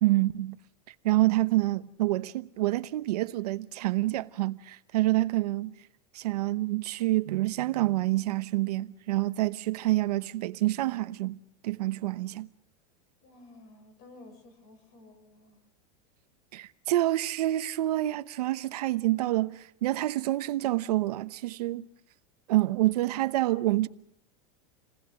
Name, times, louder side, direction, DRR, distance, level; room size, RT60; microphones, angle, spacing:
voice 1, 0.0-0.6 1.0-5.7 6.1-11.4 11.6-12.5 16.5-21.9 22.5-23.9, right 17 dB, 85° right, 0.9 m, -27 dB
voice 2, 13.2-15.7, left 2 dB, 45° left, 7.1 m, -53 dB
28.5 x 19.0 x 6.3 m
supercardioid pair, 165°, 20 cm